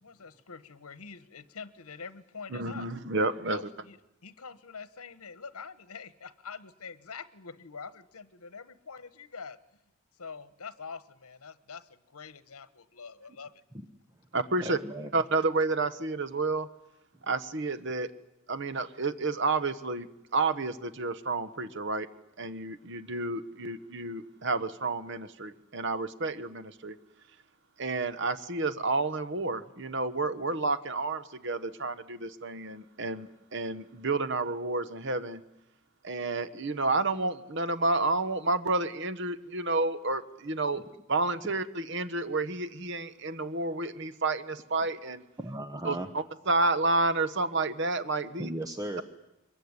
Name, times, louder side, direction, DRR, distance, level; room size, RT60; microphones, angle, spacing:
voice 1, 0.0-2.9 3.5-4.0 4.2-9.6 10.2-13.5, left 5 dB, 85° left, 15 dB, 1.1 m, -45 dB
voice 2, 2.5-3.6 14.3-14.8 15.1-16.7 17.2-18.1 18.5-20.1 20.3-22.1 22.4-26.9 27.8-35.4 36.0-45.2 45.8-48.5, right 3 dB, 55° right, 14 dB, 1.1 m, -30 dB
voice 3, 14.6-15.1 40.7-40.8 45.4-46.1 48.4-49.0, right 1 dB, 15° right, 6 dB, 1.0 m, -36 dB
23.5 x 22.0 x 9.6 m, 0.92 s
head